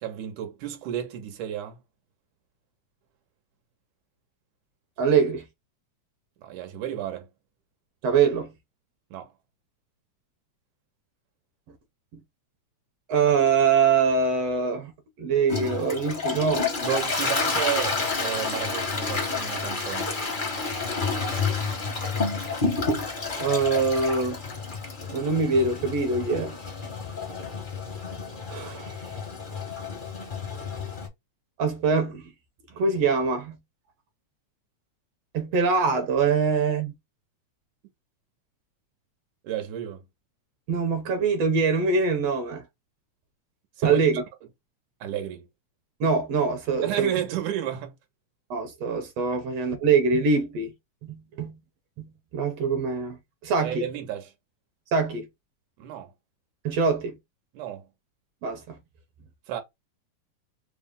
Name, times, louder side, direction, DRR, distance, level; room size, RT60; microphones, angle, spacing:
voice 1, 0.0-1.8 6.4-7.3 9.1-9.3 16.8-20.1 39.4-40.0 43.8-44.2 45.0-45.4 46.8-47.9 53.6-54.3 55.8-56.1 57.5-57.9 59.5-59.6, right 11 dB, 90° right, 2.4 m, -32 dB
voice 2, 5.0-5.4 8.0-8.5 12.1-12.2 13.1-16.7 23.4-24.4 25.1-26.5 28.5-29.0 31.6-32.3 32.7-33.6 35.3-36.9 40.7-42.6 43.8-44.2 46.0-47.1 48.5-50.7 51.0-51.6 52.0-53.9 54.9-55.3 56.6-57.2 58.4-58.8, right 5 dB, 70° right, 1.7 m, -24 dB
Toilet flush, 15.5-31.1, left 4 dB, 75° left, 0.4 m, -30 dB
4.9 x 2.1 x 3.5 m
omnidirectional pair, 3.4 m